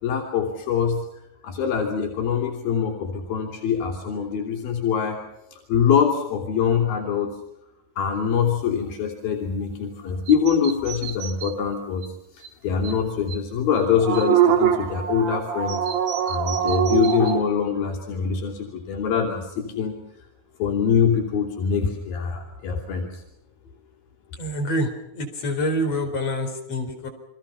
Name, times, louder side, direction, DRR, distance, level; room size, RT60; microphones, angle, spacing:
voice 1, 0.0-1.0 1.4-5.2 5.5-7.3 8.0-12.0 12.4-15.8 16.2-20.0 20.6-23.2, left 7 dB, 85° left, 0 dB, 5.0 m, -24 dB
sound 1, 10.3-11.5 12.0-12.1 12.4-12.5 12.8-12.9 13.3-13.4 13.8-17.4, right 10 dB, 80° right, 3.6 m, -23 dB
voice 2, 24.4-24.9 25.1-27.1, equal, 45° left, 4 dB, 5.3 m, -26 dB
30.0 x 24.0 x 5.8 m, 0.83 s
omnidirectional pair, 4.1 m